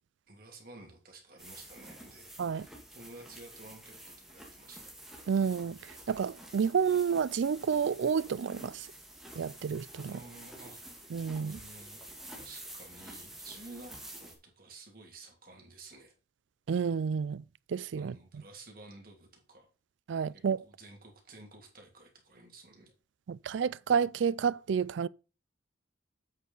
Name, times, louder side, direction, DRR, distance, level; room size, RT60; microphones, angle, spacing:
voice 1, 0.3-4.9 10.1-10.8 11.4-16.1 17.9-19.7 20.3-22.9, right 2 dB, 45° right, 2.7 m, -52 dB
sound 1, 1.4-14.3, right 1 dB, ahead, 2.1 m, -49 dB
voice 2, 5.3-5.8 6.1-8.9 9.4-10.1 11.1-11.6 16.7-17.4 17.7-18.1 20.1-20.6 23.3-25.1, right 6 dB, 70° right, 0.3 m, -30 dB
8.2 x 6.5 x 3.9 m
head